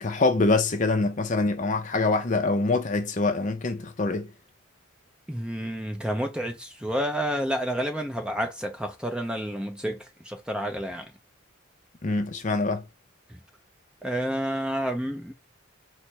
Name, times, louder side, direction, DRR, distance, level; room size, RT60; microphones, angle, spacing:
voice 1, 0.0-4.3 12.0-12.8, left 3 dB, 40° left, 0.5 m, -24 dB
voice 2, 5.3-10.0 10.2-11.1 13.3-13.4 14.0-15.3, equal, 5° right, 0.5 m, -29 dB
5.0 x 2.1 x 4.4 m
head